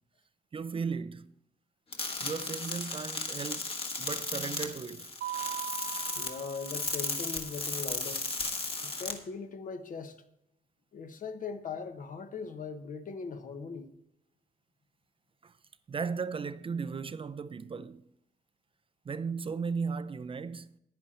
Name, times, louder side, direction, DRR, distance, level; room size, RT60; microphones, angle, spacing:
voice 1, 0.5-1.3 2.2-5.1 15.4-15.5 15.9-18.1 19.1-20.8, right 5 dB, 35° right, 0.4 m, -36 dB
sound 1, 1.9-9.1, left 3 dB, 35° left, 1.6 m, -35 dB
Mallet percussion, 5.2-7.3, right 14 dB, 80° right, 0.6 m, -40 dB
voice 2, 6.1-8.3 8.8-10.2 10.9-13.9, left 5 dB, 55° left, 1.1 m, -40 dB
10.0 x 10.0 x 4.3 m
cardioid pair, 120°, 17 cm